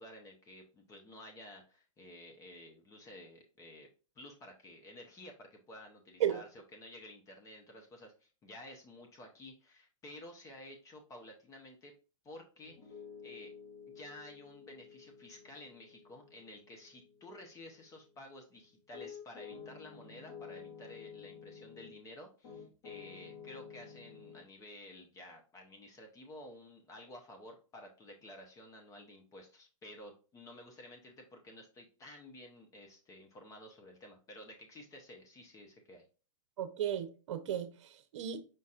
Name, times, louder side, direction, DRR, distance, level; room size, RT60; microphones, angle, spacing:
voice 1, 0.0-3.9 4.2-11.9 12.2-13.5 13.9-36.0, left 1 dB, 20° left, 0.8 m, -52 dB
Piano, 12.6-22.0 22.4-24.4, left 6 dB, 50° left, 2.3 m, -52 dB
voice 2, 36.6-38.4, right 10 dB, 65° right, 0.8 m, -35 dB
5.2 x 4.1 x 2.4 m
hypercardioid pair, 135°, 17 cm